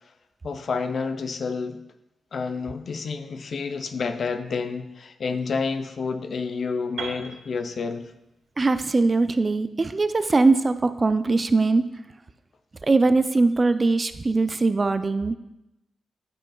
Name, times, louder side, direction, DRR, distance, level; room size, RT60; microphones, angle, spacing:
voice 1, 0.4-1.8 2.3-8.1, left 4 dB, 60° left, 9 dB, 0.5 m, -29 dB
Piano, 7.0-10.9, right 4 dB, 80° right, 1.4 m, -41 dB
voice 2, 8.6-11.9 12.9-15.3, right 3 dB, 35° right, 11 dB, 0.4 m, -21 dB
13.0 x 5.3 x 2.3 m, 0.91 s
cardioid pair, 75°, 0 cm